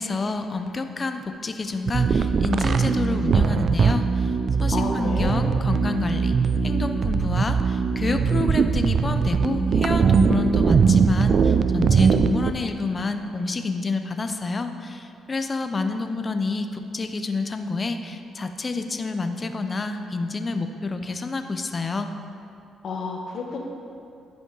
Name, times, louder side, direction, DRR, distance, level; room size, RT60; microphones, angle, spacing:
voice 1, 0.0-22.1, left 3 dB, 30° left, 7 dB, 0.5 m, -28 dB
sound 1, 1.9-12.5, right 6 dB, 50° right, 0.3 m, -21 dB
voice 2, 4.7-5.4 22.8-23.6, left 3 dB, 60° left, 1 dB, 1.2 m, -30 dB
11.0 x 5.1 x 3.8 m, 2.5 s
cardioid pair, 90°, 0 cm